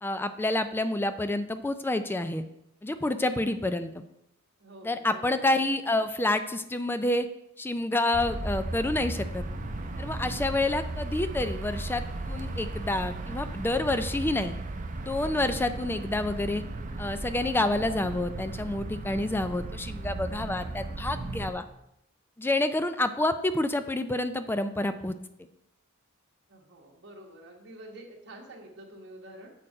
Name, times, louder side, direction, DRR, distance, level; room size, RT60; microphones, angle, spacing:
voice 1, 0.0-2.4 2.8-4.0 4.8-7.3 7.6-9.4 10.0-14.5 15.0-16.6 17.0-21.6 22.4-25.1, left 2 dB, 10° left, 10 dB, 0.3 m, -28 dB
voice 2, 4.6-5.4 26.5-29.5, right 1 dB, 55° right, 0 dB, 1.3 m, -48 dB
sound 1, 8.1-21.5, right 2 dB, 40° right, 0.6 m, -36 dB
7.5 x 4.4 x 5.4 m, 0.82 s
head